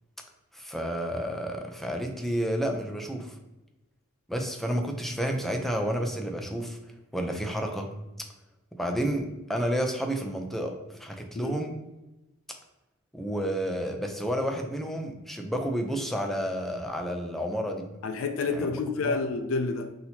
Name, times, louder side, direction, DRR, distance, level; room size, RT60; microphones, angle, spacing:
voice 1, 0.5-3.3 4.3-6.8 7.1-7.9 8.8-10.7 11.0-11.8 13.1-17.9 18.6-18.7 19.0-19.2, equal, ahead, 2 dB, 0.4 m, -30 dB
voice 2, 18.0-19.9, left 4 dB, 75° left, 6 dB, 0.4 m, -29 dB
5.9 x 2.8 x 2.8 m, 0.99 s
head